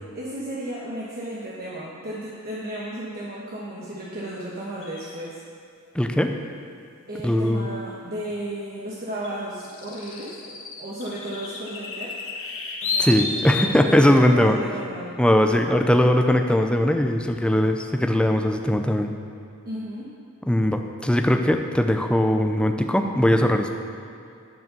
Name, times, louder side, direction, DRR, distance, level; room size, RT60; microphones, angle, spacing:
voice 1, 0.1-5.3 7.1-12.1 12.8-15.1 19.6-20.1, right 1 dB, 45° right, -6 dB, 1.2 m, -34 dB
sound 1, 4.8-5.0 7.5-7.6 9.2-13.8, left 3 dB, 60° left, 1.3 m, -31 dB
voice 2, 5.9-6.3 7.2-7.7 13.0-14.6 15.2-19.1 20.5-23.7, left 1 dB, 5° left, 5 dB, 0.5 m, -20 dB
10.5 x 5.4 x 6.8 m, 2.4 s
head